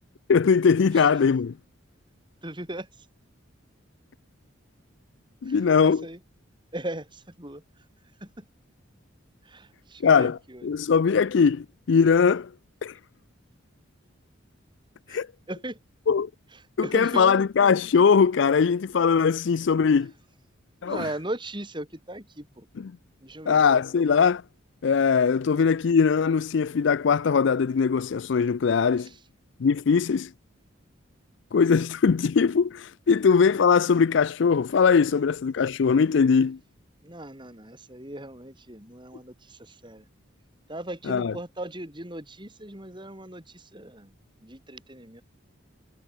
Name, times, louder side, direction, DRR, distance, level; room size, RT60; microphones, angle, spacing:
voice 1, 0.3-1.5 5.4-6.0 10.0-10.4 10.6-12.5 12.8-13.0 15.1-15.3 16.1-16.3 16.8-20.1 20.8-21.0 23.5-24.4 24.8-29.1 29.6-30.3 31.5-36.6 41.1-41.3, left 6 dB, 60° left, 0.4 m, -21 dB
voice 2, 0.9-1.3 2.4-3.1 5.4-6.2 6.7-8.5 9.4-10.7 15.1-15.8 16.5-17.4 20.8-22.7 23.2-24.1 29.0-29.2 35.0-35.2 37.0-40.1 40.7-45.2, right 1 dB, 25° right, 5.5 m, -38 dB
head